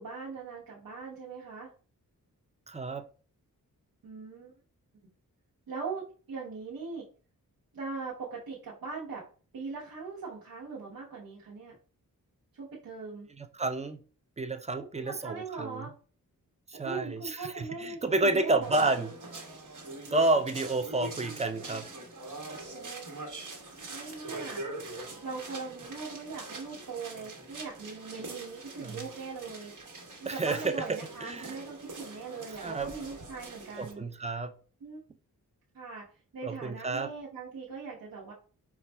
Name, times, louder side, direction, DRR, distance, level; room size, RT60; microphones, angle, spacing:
voice 1, 0.0-1.7 4.0-4.5 5.7-7.1 7.7-9.3 9.5-11.8 12.5-13.3 14.8-15.9 16.7-18.9 22.7-23.2 23.9-24.6 25.2-29.7 30.2-34.1 34.8-35.0 35.7-36.1 36.3-38.3, right 4 dB, 75° right, 1.0 m, -40 dB
voice 2, 2.7-3.0 13.4-14.0 14.4-15.8 16.8-19.1 20.1-21.9 28.8-29.0 30.3-31.6 32.6-32.9 33.8-34.5 36.4-37.1, right 2 dB, 20° right, 0.4 m, -30 dB
sound 1, 18.6-33.9, right 2 dB, 60° right, 1.2 m, -43 dB
5.1 x 2.4 x 2.2 m
cardioid pair, 50°, 36 cm